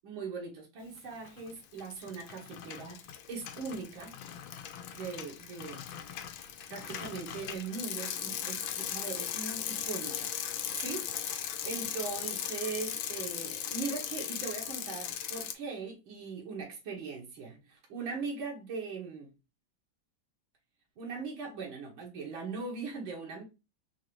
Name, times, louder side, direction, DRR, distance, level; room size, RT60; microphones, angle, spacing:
voice 1, 0.0-4.1 4.9-5.8 6.7-10.3 10.8-19.3 21.0-23.4, right 4 dB, 85° right, 2.0 m, -40 dB
Bicycle, 1.1-1.5 1.8-15.5, left 10 dB, 80° left, 1.3 m, -38 dB
4.5 x 2.5 x 3.0 m
omnidirectional pair, 2.1 m